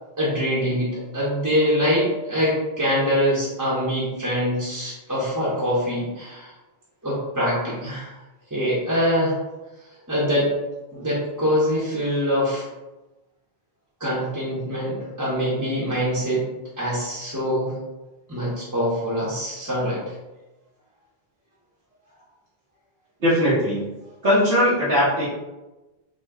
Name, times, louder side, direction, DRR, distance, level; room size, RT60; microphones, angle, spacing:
voice 1, 0.2-6.5 7.0-8.1 8.5-9.3 10.1-10.5 10.9-12.7 14.0-16.5 16.8-17.7 18.3-20.0, equal, 20° right, -8 dB, 0.8 m, -24 dB
voice 2, 23.2-23.9 24.2-25.3, equal, 85° right, -13 dB, 1.4 m, -19 dB
3.8 x 2.2 x 3.4 m, 1.1 s
omnidirectional pair, 1.1 m